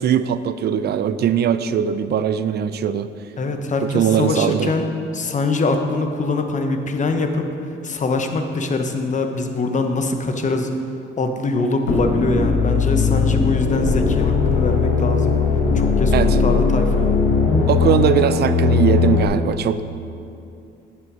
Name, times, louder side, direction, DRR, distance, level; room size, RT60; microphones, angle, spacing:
voice 1, 0.0-3.1 3.8-4.7 16.1-16.4 17.7-19.8, right 9 dB, 55° right, 13 dB, 0.5 m, -20 dB
voice 2, 3.4-4.9 5.1-7.5 7.8-10.7 11.2-15.4 15.7-17.2, left 3 dB, 40° left, 5 dB, 1.0 m, -23 dB
sound 1, 11.9-19.2, left 5 dB, 75° left, 1.4 m, -18 dB
8.4 x 7.7 x 5.1 m, 2.6 s
cardioid pair, 90°, 20 cm